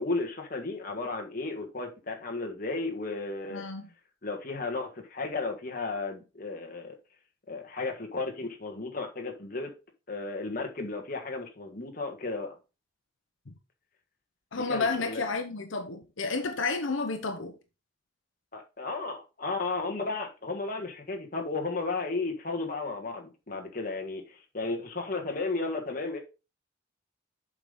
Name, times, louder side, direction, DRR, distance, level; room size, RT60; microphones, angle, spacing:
voice 1, 0.0-3.6 4.2-7.0 7.5-9.7 10.1-12.6 14.5-15.2 18.5-26.2, left 3 dB, 45° left, 1.5 m, -34 dB
voice 2, 3.5-3.9 13.5-13.6 14.5-17.6, left 3 dB, 85° left, 0.9 m, -31 dB
7.5 x 5.1 x 3.8 m
head